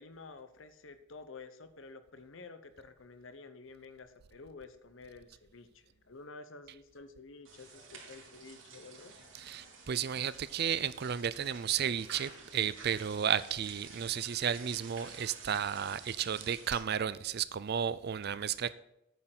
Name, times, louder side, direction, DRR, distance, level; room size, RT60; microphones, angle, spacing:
voice 1, 0.0-9.1, left 3 dB, 70° left, 0.9 m, -51 dB
sound 1, 7.4-16.8, right 4 dB, 70° right, 2.8 m, -51 dB
voice 2, 9.4-18.7, right 8 dB, 50° right, 0.4 m, -33 dB
9.3 x 6.7 x 6.0 m
head